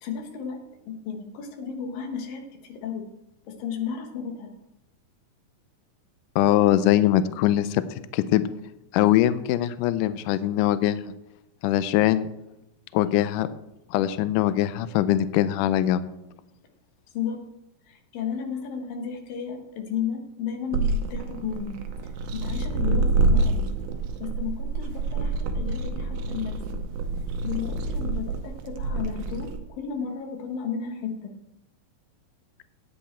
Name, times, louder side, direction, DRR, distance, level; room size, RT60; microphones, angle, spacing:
voice 1, 0.0-3.0 3.5-4.5 17.1-17.5 17.9-23.7 24.2-26.8 27.4-31.3, left 7 dB, 70° left, 4 dB, 2.9 m, -34 dB
voice 2, 6.4-7.8 8.1-8.4 8.9-11.0 11.6-12.3 12.9-13.5 13.9-16.1, left 13 dB, 90° left, 14 dB, 1.8 m, -22 dB
sound 1, 20.7-29.6, right 2 dB, 75° right, 1.8 m, -27 dB
10.0 x 8.7 x 4.4 m, 0.90 s
omnidirectional pair, 4.3 m